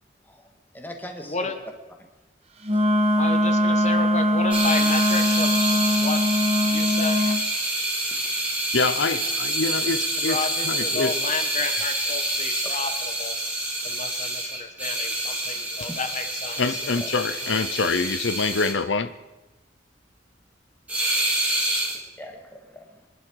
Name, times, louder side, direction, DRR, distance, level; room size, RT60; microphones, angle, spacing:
voice 1, 0.7-1.5 2.7-2.8 7.2-7.4 8.1-8.4 12.6-12.7 15.5-16.0 17.0-17.1 22.2-22.8, equal, 10° left, 3 dB, 2.1 m, -40 dB
Wind instrument woodwind instrument, 2.6-7.4, left 1 dB, 35° right, 1.4 m, -21 dB
voice 2, 3.2-6.2 6.6-7.2 10.2-12.9 13.2-13.4 13.8-16.6 17.4-17.7, left 3 dB, 40° left, 7 dB, 1.4 m, -31 dB
sound 1, 4.5-18.7 20.9-22.0, right 1 dB, 10° right, 3.2 m, -27 dB
voice 3, 8.7-11.2 15.7-15.9 16.5-19.1, left 4 dB, 90° left, 11 dB, 0.7 m, -26 dB
25.0 x 11.0 x 4.8 m, 1.0 s
head